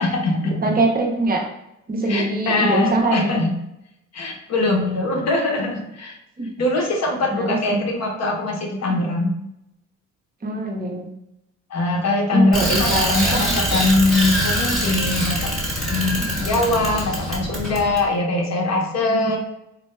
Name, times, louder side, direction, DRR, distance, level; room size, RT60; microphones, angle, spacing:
voice 1, 0.0-0.6 2.1-3.5 4.1-6.2 6.6-9.4 11.7-15.5 15.9-16.2 16.4-19.4, left 2 dB, 55° left, 0 dB, 0.9 m, -22 dB
voice 2, 0.6-1.4 1.9-3.4 6.4-6.5 7.3-7.8 8.9-9.1 10.4-11.1 12.3-13.9 16.2-16.5 19.1-19.3, right 2 dB, 30° right, 0 dB, 0.7 m, -23 dB
Bicycle, 12.5-18.0, equal, ahead, 1.2 m, -24 dB
4.4 x 2.2 x 3.2 m, 0.85 s
cardioid pair, 125°, 31 cm